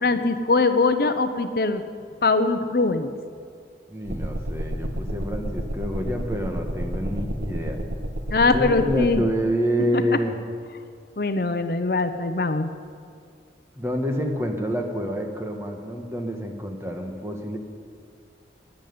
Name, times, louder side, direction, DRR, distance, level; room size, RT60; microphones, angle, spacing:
voice 1, 0.0-1.8 2.2-3.1 8.3-9.2 11.2-12.7, left 3 dB, 55° left, 8 dB, 0.7 m, -22 dB
voice 2, 3.9-7.8 8.5-10.3 13.7-17.6, equal, 15° right, 3 dB, 1.4 m, -28 dB
sound 1, 4.0-9.2, equal, 85° right, 1.2 m, -30 dB
12.5 x 10.0 x 9.3 m, 2.2 s
head